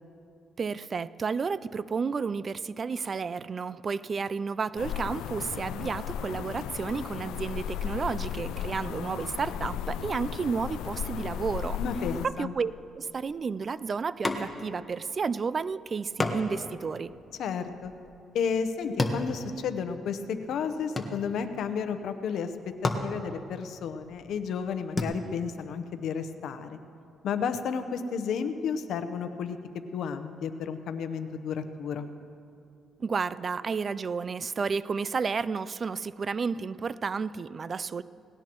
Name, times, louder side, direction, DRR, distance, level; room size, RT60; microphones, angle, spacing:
voice 1, 0.6-11.8 12.2-17.1 33.0-38.0, right 5 dB, 40° right, 17 dB, 0.3 m, -31 dB
sound 1, 4.8-12.3, left 9 dB, 90° left, 0.4 m, -35 dB
voice 2, 11.8-12.5 17.4-17.9 18.3-22.5 22.8-26.8 27.2-29.6 29.9-32.1, left 6 dB, 75° left, 9 dB, 0.9 m, -32 dB
sound 2, 14.2-14.9 15.1-15.2 16.2-20.1 20.4-21.7 22.3-22.4 22.7-25.0, left 2 dB, 20° left, 1.3 m, -33 dB
18.5 x 17.5 x 3.0 m, 2.6 s
cardioid pair, 90°, 0 cm